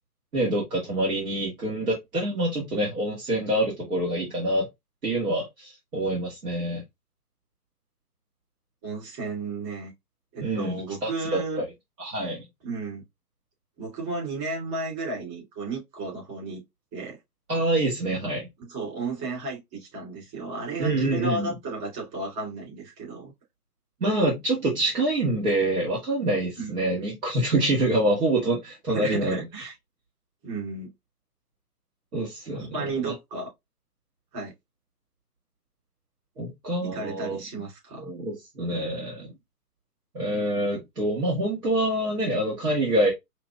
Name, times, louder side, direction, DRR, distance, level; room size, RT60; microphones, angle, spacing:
voice 1, 0.3-4.7 5.0-6.8 10.4-11.4 12.0-12.4 17.5-18.5 20.8-21.6 24.0-29.4 32.1-32.8 33.1-33.2 36.4-37.4 38.0-39.3 40.1-43.1, right 1 dB, 65° right, 2.1 m, -26 dB
voice 2, 8.8-9.9 10.3-11.6 12.6-13.0 13.8-16.6 16.9-17.2 18.6-23.3 26.6-26.8 28.9-29.7 30.4-30.9 32.5-33.5 34.3-34.5 36.9-38.1, right 3 dB, 25° right, 3.0 m, -33 dB
5.8 x 3.0 x 2.4 m
figure-of-eight pair, 140°, 47 cm